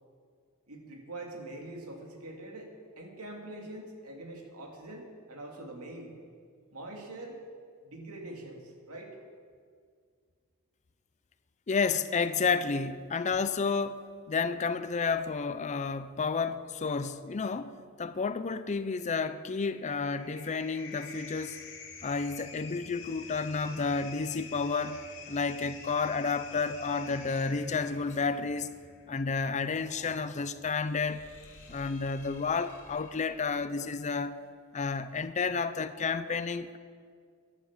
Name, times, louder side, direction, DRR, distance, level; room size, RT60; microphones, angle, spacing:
voice 1, 0.7-6.1 6.7-7.4 7.8-9.1, right 2 dB, 85° right, 2.4 m, -44 dB
voice 2, 11.7-21.6 22.0-28.7 29.1-31.2 31.7-34.4 34.7-36.8, left 4 dB, 30° left, 0.5 m, -31 dB
sound 1, 19.4-33.8, left 5 dB, 60° left, 2.3 m, -49 dB
13.0 x 11.0 x 7.3 m
head